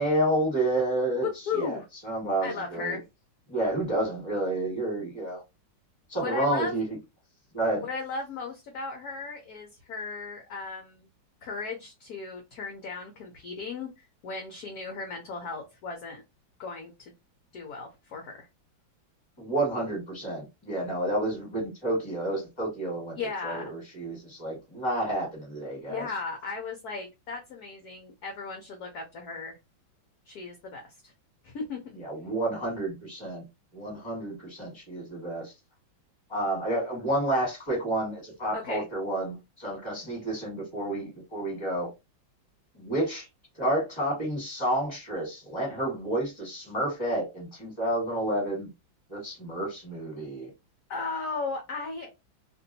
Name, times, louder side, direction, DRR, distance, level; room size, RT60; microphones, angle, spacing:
voice 1, 0.0-1.3 1.5-3.0 3.5-5.4 6.1-6.8 7.5-7.9 19.4-23.2 23.4-26.1 31.9-33.4 33.7-35.5 36.3-41.9 42.7-43.3 43.5-48.7 49.1-50.5, right 1 dB, 15° left, 1.4 m, -30 dB
voice 2, 1.2-1.9 2.4-3.0 6.2-6.7 7.8-11.1 11.4-16.2 16.6-17.1 17.5-18.5 23.1-23.7 25.8-29.6 30.3-31.1 31.4-31.8 38.5-38.9 50.9-52.1, left 4 dB, 65° left, 1.0 m, -36 dB
2.9 x 2.6 x 2.6 m
omnidirectional pair, 2.2 m